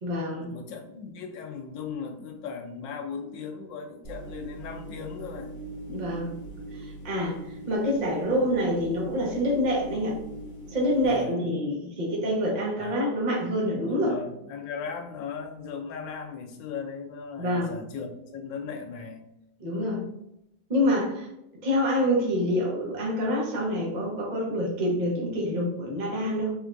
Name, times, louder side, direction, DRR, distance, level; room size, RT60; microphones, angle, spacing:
voice 1, 0.0-0.5 5.9-6.3 6.7-7.4 7.7-10.2 10.7-14.1 17.4-17.7 19.6-20.0 20.7-21.3 21.6-26.5, equal, 35° right, -3 dB, 0.7 m, -26 dB
voice 2, 0.5-5.5 11.0-11.4 12.8-12.9 13.9-19.2, left 6 dB, 90° left, 4 dB, 1.4 m, -37 dB
sound 1, 4.0-11.1, right 2 dB, 50° left, 1.9 m, -41 dB
4.4 x 3.4 x 2.5 m, 0.84 s
omnidirectional pair, 1.9 m